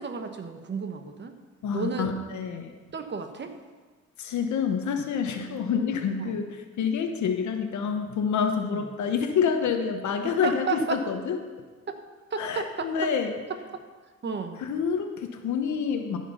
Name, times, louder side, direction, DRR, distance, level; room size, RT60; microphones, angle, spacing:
voice 1, 0.0-1.3 1.7-2.1 2.9-3.5 6.2-6.4 8.7-8.8 10.2-11.0 11.9-12.0 12.3-13.1 13.7-13.8 14.2-14.6, right 4 dB, 35° right, 7 dB, 1.1 m, -32 dB
voice 2, 1.6-2.7 4.2-11.4 12.4-13.3 14.6-16.2, left 6 dB, 70° left, 5 dB, 1.1 m, -27 dB
14.0 x 5.1 x 5.6 m, 1.4 s
cardioid pair, 90°, 30 cm